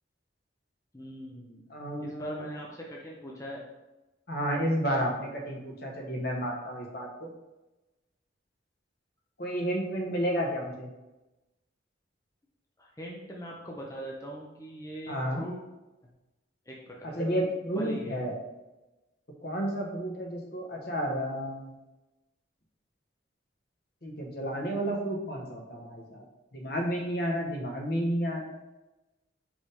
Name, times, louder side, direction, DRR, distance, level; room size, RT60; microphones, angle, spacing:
voice 1, 0.9-1.6 2.0-3.6 12.8-15.6 16.7-17.2 17.7-18.3, equal, 15° left, -3 dB, 0.7 m, -41 dB
voice 2, 1.7-2.5 4.3-7.3 9.4-10.9 15.1-15.4 17.1-18.3 19.4-21.8 24.0-26.2 26.5-28.5, equal, 55° left, 0 dB, 1.2 m, -31 dB
5.2 x 5.1 x 3.5 m, 1.0 s
head